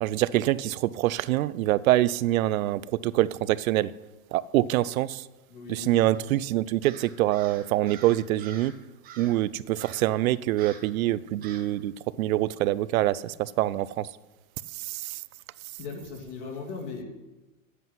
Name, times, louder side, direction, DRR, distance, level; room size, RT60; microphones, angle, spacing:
voice 1, 0.0-3.9 4.3-5.3 5.7-8.7 9.2-11.9 12.2-14.1 14.7-15.2, right 15 dB, 80° right, 0.6 m, -25 dB
voice 2, 5.5-6.4 15.8-17.0, left 4 dB, 55° left, 2.9 m, -38 dB
Crow, 6.8-8.8 9.0-9.4 9.8-10.1 10.6-10.9 11.4-11.7, right 7 dB, 20° right, 1.0 m, -47 dB
9.3 x 8.1 x 5.7 m
supercardioid pair, 155°, 41 cm